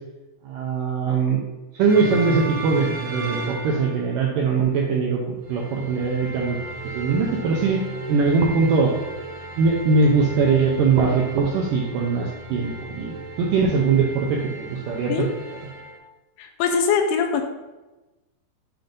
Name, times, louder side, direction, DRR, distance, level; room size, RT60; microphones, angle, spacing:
voice 1, 0.4-1.4 1.7-6.6 6.9-7.8 8.1-8.9 9.6-15.3, right 4 dB, 85° right, -2 dB, 1.9 m, -21 dB
sound 1, 1.9-4.3 5.4-16.0, right 3 dB, 60° right, 1.5 m, -35 dB
voice 2, 16.4-17.4, left 6 dB, 85° left, 4 dB, 2.5 m, -22 dB
7.7 x 2.6 x 5.2 m, 1.1 s
omnidirectional pair, 4.6 m